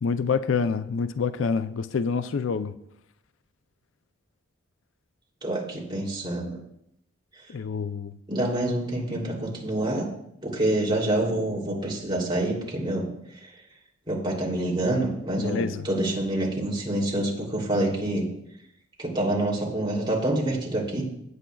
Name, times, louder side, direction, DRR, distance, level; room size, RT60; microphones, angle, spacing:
voice 1, 0.0-2.8 7.5-8.1 15.4-15.9, left 5 dB, 70° left, 0.4 m, -27 dB
voice 2, 5.4-6.6 8.3-10.1 10.4-13.1 13.3-13.5 14.1-18.3 19.0-21.0, right 1 dB, 25° right, 2.8 m, -27 dB
17.5 x 8.3 x 2.3 m
head